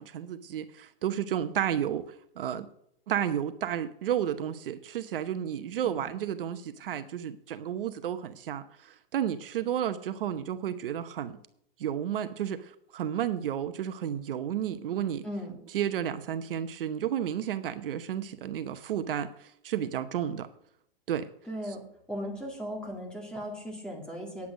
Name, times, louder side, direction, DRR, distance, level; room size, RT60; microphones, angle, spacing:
voice 1, 0.0-2.7 3.1-11.4 11.8-15.2 15.7-20.5 21.1-21.3, right 10 dB, 65° right, 11 dB, 0.9 m, -32 dB
voice 2, 15.2-15.6 21.5-21.8 22.1-24.5, equal, 5° left, -2 dB, 2.3 m, -37 dB
9.7 x 8.4 x 6.2 m, 0.73 s
hypercardioid pair, 155°, 29 cm